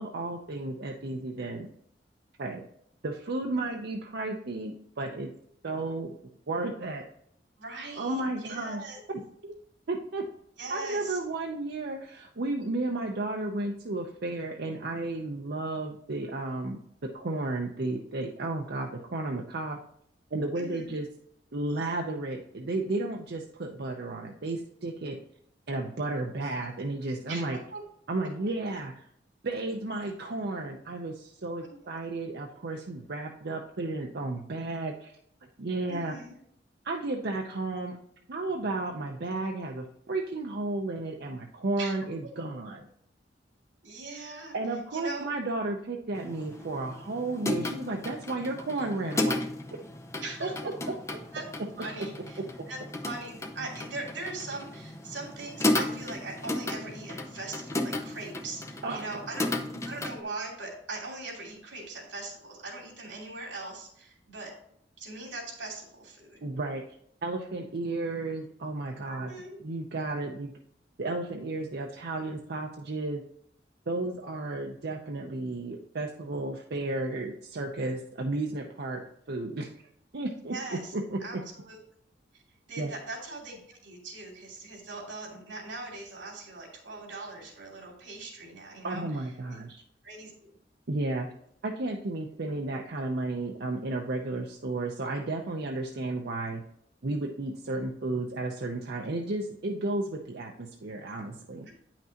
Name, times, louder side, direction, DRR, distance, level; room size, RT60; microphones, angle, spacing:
voice 1, 0.0-1.7 2.4-2.6 3.0-5.3 5.6-6.1 6.5-7.0 8.0-8.8 9.1-9.5 9.9-10.2 10.7-16.8 17.1-19.8 20.3-21.1 21.5-25.2 25.7-27.6 28.1-29.1 29.4-35.1 35.6-36.1 36.8-38.0 38.3-42.8 44.5-49.5 50.4-50.7 58.8-59.0 66.4-66.8 67.2-69.3 69.6-70.5 71.0-73.2 73.9-79.0 79.3-79.7 80.1-80.5 80.9-81.4 82.8-82.9 88.8-89.8 90.9-91.3 91.6-96.6 97.0-101.7, right 2 dB, 60° right, 2 dB, 0.7 m, -33 dB
voice 2, 7.6-9.0 10.6-11.2 20.6-20.9 27.3-27.8 28.2-28.3 31.6-31.8 35.9-36.4 41.8-41.9 43.8-44.6 44.9-45.3 50.2-51.5 51.8-52.4 52.7-59.5 59.8-64.5 65.0-66.4 69.0-69.6 80.5-80.9 81.2-81.4 81.7-81.8 82.7-89.0 89.5-89.6 90.0-90.5 101.7-101.8, right 2 dB, 85° right, 0 dB, 2.6 m, -40 dB
sound 1, 46.1-60.2, left 2 dB, 15° left, 0.7 m, -34 dB
9.2 x 5.9 x 2.9 m, 0.69 s
head